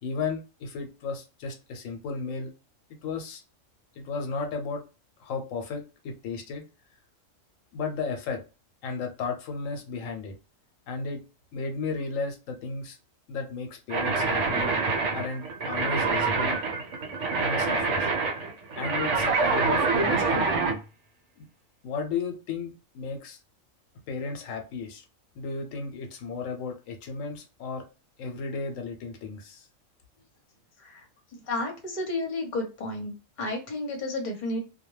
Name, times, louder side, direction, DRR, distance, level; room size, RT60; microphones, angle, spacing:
voice 1, 0.0-2.5 3.0-3.4 4.0-4.8 5.2-6.6 7.7-8.4 8.8-10.4 10.9-11.2 11.5-13.0 13.3-14.7 15.1-16.6 17.4-18.1 18.8-20.6 21.4-21.5 21.8-23.4 24.1-25.0 25.4-27.9 28.2-29.7, left 4 dB, 85° left, 4 dB, 1.0 m, -34 dB
sound 1, 13.9-20.8, right 4 dB, 65° right, 1.0 m, -26 dB
voice 2, 31.5-33.1 33.4-34.6, left 2 dB, 40° left, 2 dB, 0.8 m, -31 dB
2.2 x 2.2 x 3.1 m, 0.31 s
omnidirectional pair, 1.3 m